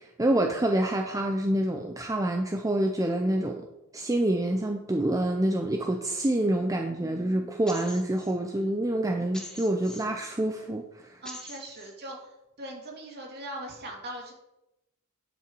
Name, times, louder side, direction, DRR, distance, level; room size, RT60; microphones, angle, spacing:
voice 1, 0.0-3.7 3.9-11.2, right 1 dB, 15° right, 3 dB, 0.6 m, -27 dB
voice 2, 6.5-7.1 11.2-14.3, right 1 dB, 50° right, 0 dB, 2.4 m, -41 dB
sound 1, 7.7-8.3 9.3-10.3 11.2-11.9, left 1 dB, 5° left, 1.1 m, -43 dB
10.0 x 6.3 x 4.6 m, 0.90 s
head